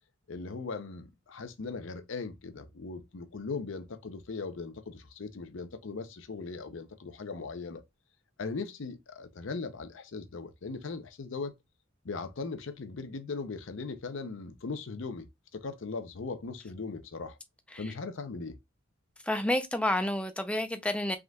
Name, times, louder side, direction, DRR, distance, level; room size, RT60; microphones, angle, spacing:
voice 1, 0.3-7.8 8.4-11.5 12.0-15.3 15.5-17.4 17.8-18.6, left 4 dB, 60° left, 0.6 m, -39 dB
voice 2, 19.2-21.2, left 1 dB, 5° left, 0.5 m, -30 dB
5.2 x 3.7 x 2.3 m
head